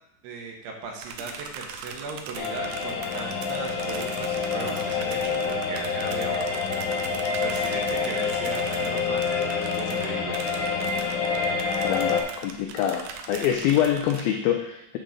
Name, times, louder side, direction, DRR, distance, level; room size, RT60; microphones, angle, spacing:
voice 1, 0.2-6.9 7.3-10.4, right 4 dB, 75° right, 2 dB, 3.1 m, -37 dB
sound 1, 1.0-14.2, right 6 dB, 90° right, 2.0 m, -41 dB
sound 2, 2.3-12.2, left 5 dB, 65° left, 2.5 m, -27 dB
voice 2, 11.8-15.0, left 10 dB, 90° left, 3 dB, 2.0 m, -25 dB
9.0 x 3.7 x 6.5 m, 0.84 s
omnidirectional pair, 5.0 m